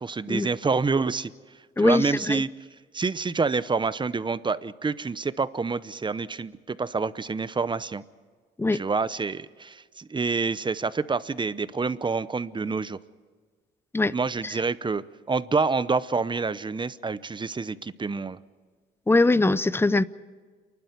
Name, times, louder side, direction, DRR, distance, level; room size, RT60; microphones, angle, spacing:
voice 1, 0.0-1.3 1.8-2.5 2.9-8.0 8.7-13.0 14.1-18.4, right 4 dB, 25° right, 0.8 m, -27 dB
voice 2, 1.8-2.4 8.6-8.8 13.9-14.1 19.1-20.0, left 2 dB, 10° left, 0.6 m, -21 dB
29.0 x 12.0 x 9.5 m
cardioid pair, 90°, 20 cm